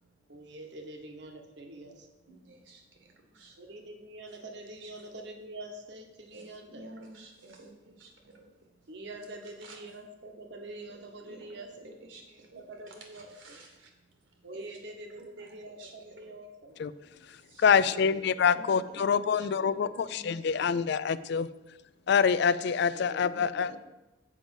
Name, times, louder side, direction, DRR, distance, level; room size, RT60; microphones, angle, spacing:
voice 1, 0.3-2.1 3.6-6.9 8.9-11.9 12.3-13.6 14.4-16.8 17.8-18.5 18.8-19.0 19.6-20.0 22.9-23.8, right 2 dB, 65° right, 4 dB, 1.2 m, -45 dB
voice 2, 2.2-3.6 4.3-4.4 4.8-4.9 6.3-8.5 9.6-9.8 10.9-12.6 12.9-13.9 15.2-15.9 16.2-16.3 17.4-17.8 18.5-20.5 23.3-23.8, right 2 dB, 80° right, 1 dB, 2.0 m, -52 dB
voice 3, 17.6-21.5 22.1-23.7, left 6 dB, 60° left, 16 dB, 0.4 m, -26 dB
7.6 x 5.2 x 7.1 m, 1.0 s
head